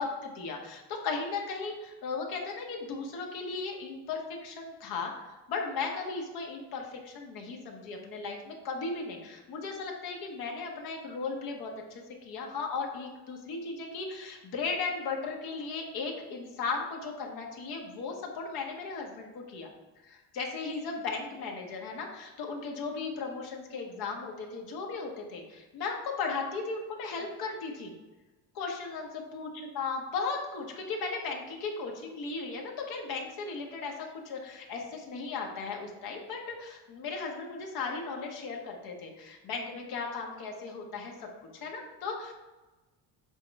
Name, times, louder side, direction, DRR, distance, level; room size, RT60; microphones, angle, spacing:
voice 1, 0.0-19.7 20.0-27.9 28.5-29.5 29.7-41.3 41.6-42.3, left 4 dB, 65° left, 1 dB, 1.5 m, -36 dB
8.0 x 3.6 x 5.4 m, 1.2 s
cardioid pair, 145°, 40 cm